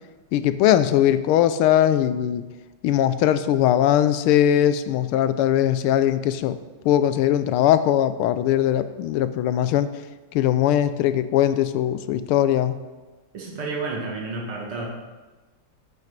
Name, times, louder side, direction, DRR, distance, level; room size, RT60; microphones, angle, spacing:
voice 1, 0.3-2.4 2.8-6.6 6.8-9.9 10.3-12.8, left 11 dB, 90° left, 12 dB, 1.5 m, -20 dB
voice 2, 13.3-14.9, right 3 dB, 85° right, -1 dB, 2.7 m, -30 dB
9.1 x 5.9 x 7.4 m, 1.2 s
omnidirectional pair, 2.3 m